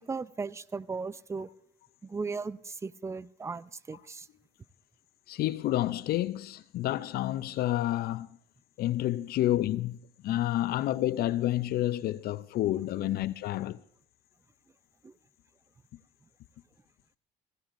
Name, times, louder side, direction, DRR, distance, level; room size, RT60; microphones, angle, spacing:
voice 1, 0.0-1.5 2.0-4.3 13.0-13.2 15.0-15.1, right 4 dB, 15° right, 0.4 m, -37 dB
voice 2, 5.3-8.3 8.8-10.0 10.2-13.8, left 14 dB, 65° left, 0.4 m, -29 dB
17.0 x 16.0 x 2.5 m
cardioid pair, 110°, 17 cm